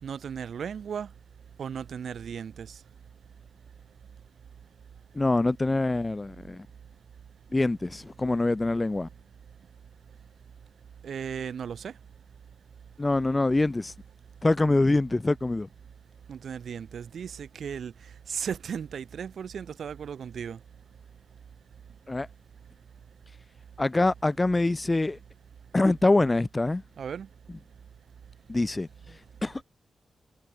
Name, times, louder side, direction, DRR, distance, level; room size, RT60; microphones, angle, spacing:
voice 1, 0.0-1.1 1.6-2.7 11.0-11.9 16.3-17.9 18.3-20.6 27.0-27.3, right 7 dB, 70° right, 4.2 m, -36 dB
voice 2, 5.1-6.7 7.5-9.1 13.0-13.9 14.4-15.7 22.1-22.3 23.8-25.2 25.7-26.8 28.5-28.9 29.4-29.6, left 2 dB, 20° left, 0.5 m, -24 dB
wide cardioid pair, 160°, 0 cm